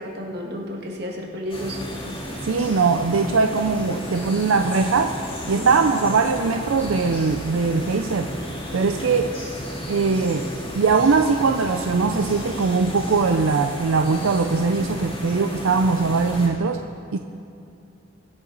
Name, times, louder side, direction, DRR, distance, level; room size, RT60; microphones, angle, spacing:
voice 1, 0.0-1.8 5.6-5.7, equal, 55° right, 0 dB, 1.8 m, -32 dB
sound 1, 1.5-16.5, equal, 25° left, 2.3 m, -33 dB
voice 2, 2.4-5.1 5.5-8.3 8.7-9.4 9.9-16.9 17.1-17.2, right 4 dB, 85° right, 6 dB, 0.5 m, -21 dB
22.5 x 8.0 x 4.0 m, 2.6 s
head